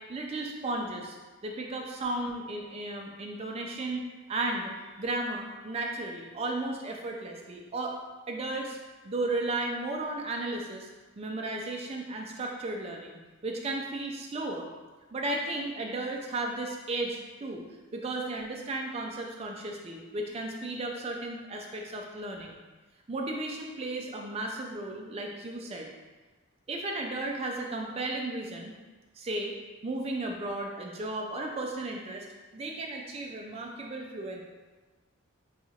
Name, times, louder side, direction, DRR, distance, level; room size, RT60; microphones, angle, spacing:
voice 1, 0.1-1.2 1.4-4.0 4.3-8.0 8.3-8.8 9.0-10.9 11.2-14.7 15.1-17.6 17.9-22.6 23.1-25.9 26.7-28.7 29.2-29.5 29.8-32.3 32.5-34.4, right 2 dB, 30° right, 1 dB, 0.3 m, -34 dB
2.8 x 2.4 x 4.1 m, 1.3 s
head